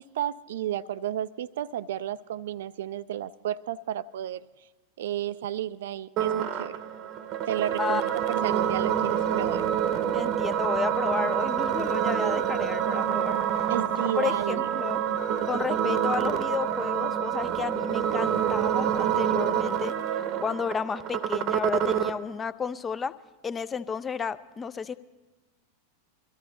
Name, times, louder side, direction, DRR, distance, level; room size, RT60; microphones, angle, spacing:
voice 1, 0.0-4.4 5.0-6.8 7.5-9.7 13.7-14.8, right 11 dB, 60° right, 16 dB, 0.4 m, -32 dB
sound 1, 6.2-22.2, right 9 dB, 35° right, 0.9 m, -27 dB
voice 2, 7.8-8.1 10.1-13.4 14.2-15.0 15.5-19.9 20.4-23.1 23.4-24.9, left 6 dB, 20° left, 15 dB, 0.5 m, -32 dB
23.0 x 14.0 x 3.9 m, 1.3 s
figure-of-eight pair, 90°, 0 cm